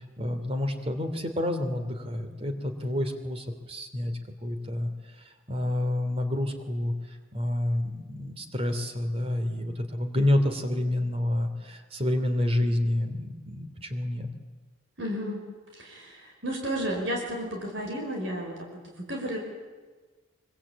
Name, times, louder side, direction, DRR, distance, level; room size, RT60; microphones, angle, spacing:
voice 1, 0.2-4.1 4.4-4.9 5.2-14.3, left 1 dB, 30° right, 7 dB, 2.9 m, -29 dB
voice 2, 15.0-15.4 15.7-19.4, equal, 60° right, 1 dB, 5.5 m, -33 dB
25.0 x 24.5 x 8.7 m, 1.3 s
head